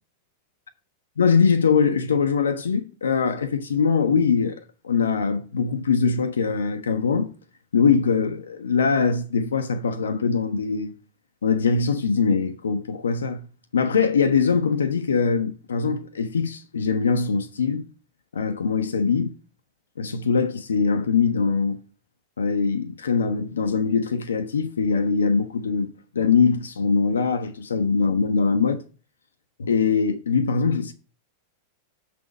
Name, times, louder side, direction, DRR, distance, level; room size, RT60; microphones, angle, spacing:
voice 1, 1.2-7.3 7.7-11.0 11.4-13.4 13.7-17.8 18.3-19.3 20.0-21.8 22.4-28.8 29.6-30.9, left 5 dB, 70° left, 0.6 m, -22 dB
6.7 x 4.1 x 6.5 m
figure-of-eight pair, 90°, 0 cm